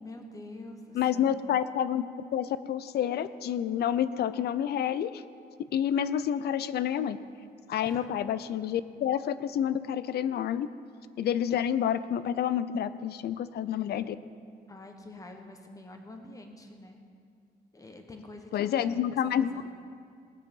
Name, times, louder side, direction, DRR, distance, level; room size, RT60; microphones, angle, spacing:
voice 1, 0.0-1.5 7.8-8.1 14.7-17.0 17.7-19.1 19.4-19.6, left 2 dB, 20° left, 4 dB, 1.3 m, -46 dB
voice 2, 0.9-5.2 5.6-7.2 7.7-10.7 11.2-14.2 18.5-19.5, left 9 dB, 70° left, 15 dB, 0.5 m, -29 dB
18.5 x 7.7 x 5.4 m, 2.2 s
cardioid pair, 125°, 17 cm